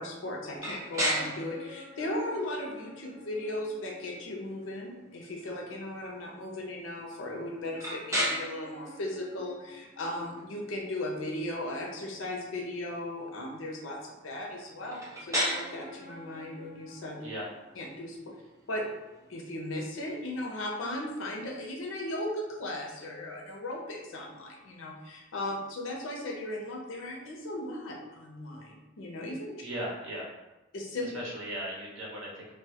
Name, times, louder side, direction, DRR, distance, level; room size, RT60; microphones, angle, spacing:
voice 1, 0.0-17.2 17.8-18.2 18.7-18.8 19.3-29.5 30.7-31.1, left 1 dB, 85° left, 0 dB, 0.5 m, -37 dB
sound 1, 0.6-20.3, equal, 15° right, 0.6 m, -38 dB
voice 2, 29.6-30.3 31.0-32.5, equal, 90° right, -4 dB, 0.8 m, -37 dB
2.2 x 2.1 x 2.7 m, 1.0 s
head